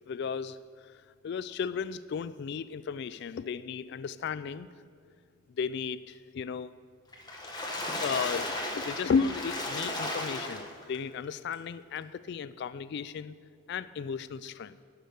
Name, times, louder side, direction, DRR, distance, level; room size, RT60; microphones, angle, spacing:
voice 1, 0.1-0.6 1.2-4.7 5.6-6.7 8.0-13.3 13.7-14.8, left 6 dB, 60° left, 15 dB, 0.3 m, -34 dB
Water / Splash splatter, 7.1-11.0 11.5-11.6 12.0-12.1, left 1 dB, 20° left, 1.5 m, -35 dB
11.5 x 6.8 x 9.3 m, 2.3 s
head